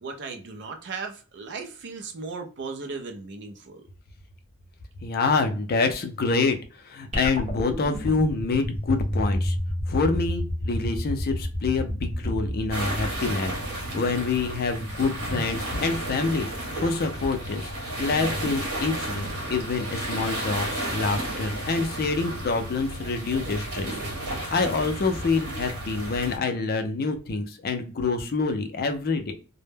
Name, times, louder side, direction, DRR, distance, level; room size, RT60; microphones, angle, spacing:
voice 1, 0.0-3.8, right 4 dB, 55° right, 0.5 m, -36 dB
voice 2, 5.0-6.6 6.8-9.6 9.9-29.3, left 4 dB, 45° left, 0.4 m, -27 dB
sound 1, 7.1-13.6, left 1 dB, 30° right, 0.9 m, -30 dB
sound 2, 12.7-26.4, right 1 dB, 85° right, 0.9 m, -32 dB
2.1 x 2.1 x 3.2 m
head